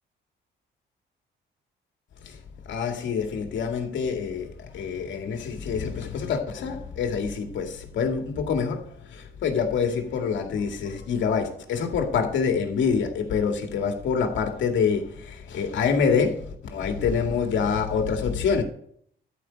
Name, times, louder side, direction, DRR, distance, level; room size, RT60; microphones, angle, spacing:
voice 1, 2.7-18.6, left 6 dB, 70° left, 2.3 m, -26 dB
13.0 x 5.1 x 8.7 m
cardioid pair, 90°, 20 cm